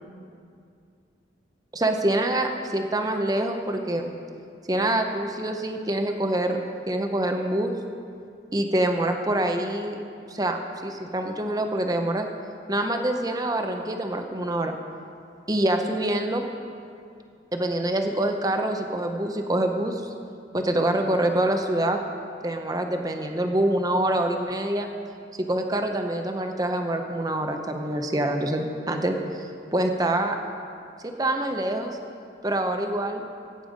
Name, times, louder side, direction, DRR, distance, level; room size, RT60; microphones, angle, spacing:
voice 1, 1.7-4.1 4.7-6.6 6.9-7.8 8.5-10.0 10.3-12.3 12.7-14.8 15.5-16.5 17.5-20.1 20.5-22.0 22.4-24.9 25.5-30.4 31.0-32.0 32.4-33.2, right 1 dB, 20° right, 4 dB, 0.8 m, -25 dB
16.5 x 9.0 x 5.1 m, 2.4 s
head